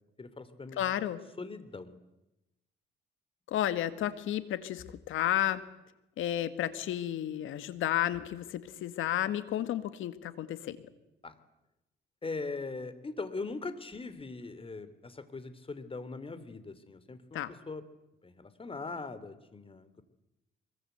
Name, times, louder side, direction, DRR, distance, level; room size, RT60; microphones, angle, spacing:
voice 1, 0.2-0.8 1.4-1.9 11.2-11.4 12.2-17.8 18.2-20.0, left 3 dB, 25° left, 13 dB, 2.9 m, -41 dB
voice 2, 0.8-1.2 3.5-5.6 6.2-10.8 17.3-17.5, left 12 dB, 85° left, 12 dB, 1.9 m, -32 dB
24.5 x 23.0 x 8.1 m, 0.92 s
cardioid pair, 90°, 20 cm